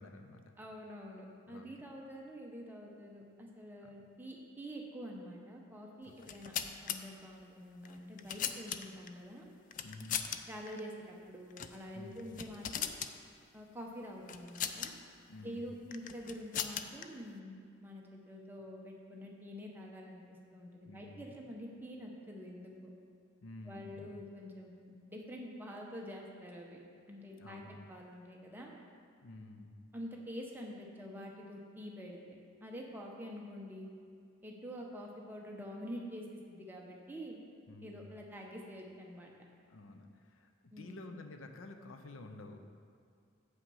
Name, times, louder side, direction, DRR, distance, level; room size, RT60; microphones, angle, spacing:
voice 1, 0.0-0.4 1.5-1.7 3.8-3.9 9.8-10.2 11.9-12.3 15.3-15.7 20.9-21.4 23.4-24.2 27.3-27.8 29.2-29.8 37.7-38.1 39.7-40.5 40.8-42.7, left 2 dB, 85° left, 6 dB, 0.6 m, -50 dB
voice 2, 0.6-6.5 6.8-9.5 10.5-12.9 13.5-14.9 15.4-22.9 23.7-26.8 27.1-28.7 29.9-32.4 32.6-33.9 34.4-37.4 37.8-39.3 40.7-41.2, equal, 10° right, -1 dB, 0.8 m, -47 dB
sound 1, 6.2-7.0 7.8-9.1 9.7-10.4 10.7-10.8 11.5-11.8 12.1-13.1 14.3-14.9 15.9-17.0, left 9 dB, 40° left, 0.3 m, -38 dB
7.9 x 5.8 x 5.5 m, 2.3 s
head